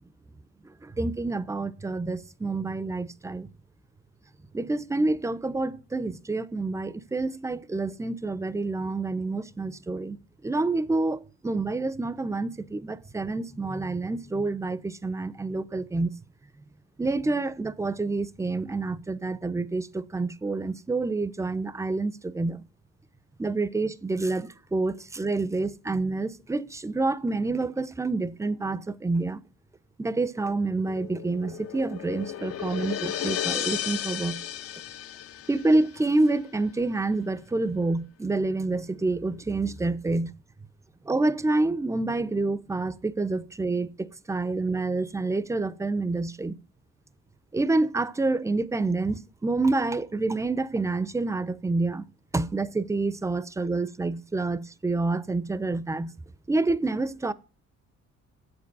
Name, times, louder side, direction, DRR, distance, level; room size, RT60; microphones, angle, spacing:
voice 1, 0.8-3.5 4.5-10.2 10.4-16.1 17.0-22.6 23.4-29.4 30.0-34.4 35.5-40.3 41.1-46.6 47.5-52.0 52.3-56.1 56.5-57.3, right 3 dB, 10° right, 0.4 m, -28 dB
sound 1, 30.8-36.0, left 10 dB, 50° left, 0.4 m, -34 dB
7.9 x 5.3 x 5.3 m
cardioid pair, 90°, 30 cm